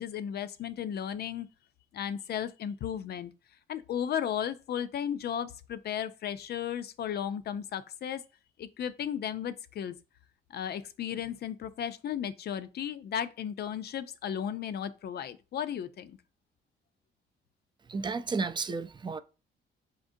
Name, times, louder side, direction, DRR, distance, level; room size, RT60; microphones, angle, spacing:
voice 1, 0.0-1.5 1.9-3.3 3.7-8.2 8.6-10.0 10.5-16.2, left 9 dB, 55° left, 0.5 m, -35 dB
voice 2, 17.9-19.2, right 4 dB, 25° right, 0.4 m, -32 dB
4.2 x 3.7 x 2.6 m
cardioid pair, 90°, 20 cm